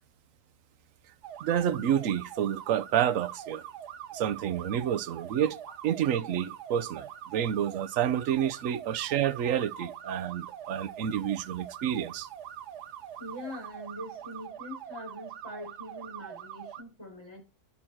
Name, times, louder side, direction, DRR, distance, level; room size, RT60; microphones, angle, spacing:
sound 1, 1.2-16.8, right 10 dB, 90° right, 1.5 m, -43 dB
voice 1, 1.4-3.6 4.1-5.6 5.8-12.3, right 10 dB, 65° right, 1.0 m, -29 dB
voice 2, 9.4-9.9 13.2-17.4, left 1 dB, 15° left, 6.5 m, -43 dB
11.0 x 8.7 x 4.5 m
omnidirectional pair, 1.6 m